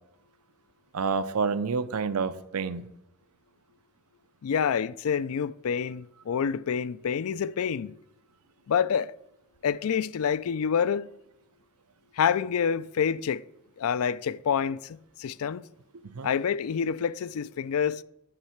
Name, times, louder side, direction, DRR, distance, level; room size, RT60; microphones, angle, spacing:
voice 1, 0.9-2.8 16.0-16.3, right 5 dB, 80° right, 0.6 m, -28 dB
voice 2, 4.4-7.9 8.7-9.1 9.6-11.1 12.2-13.4 13.8-15.6 16.2-18.0, left 7 dB, 70° left, 0.4 m, -27 dB
10.0 x 6.4 x 5.8 m
head